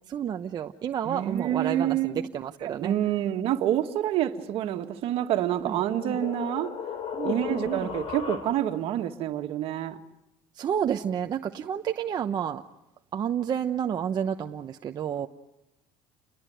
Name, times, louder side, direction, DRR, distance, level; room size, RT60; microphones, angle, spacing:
voice 1, 0.1-2.9 5.7-5.8 6.0-6.2 7.1-7.9 10.6-12.6 13.1-15.3, right 9 dB, 40° right, 1.0 m, -30 dB
voice 2, 1.0-2.3 2.6-6.7 7.2-10.0, right 11 dB, 60° right, 2.0 m, -27 dB
sound 1, 5.1-8.9, left 8 dB, 55° left, 3.5 m, -36 dB
30.0 x 22.0 x 8.0 m
cardioid pair, 115°, 11 cm